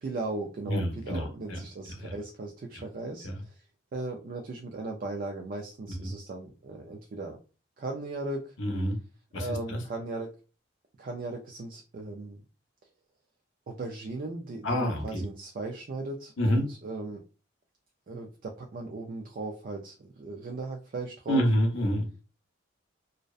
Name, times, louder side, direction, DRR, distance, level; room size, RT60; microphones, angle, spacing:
voice 1, 0.0-3.7 3.9-7.4 7.8-8.5 9.3-10.3 11.0-12.4 13.7-17.2 18.1-21.4, right 2 dB, 45° right, 2 dB, 0.3 m, -37 dB
voice 2, 0.7-1.6 2.0-2.1 6.0-6.1 8.6-9.0 9.3-9.8 14.6-15.2 16.4-16.6 21.3-22.1, equal, 70° left, 3 dB, 0.6 m, -27 dB
2.6 x 2.0 x 2.3 m, 0.34 s
head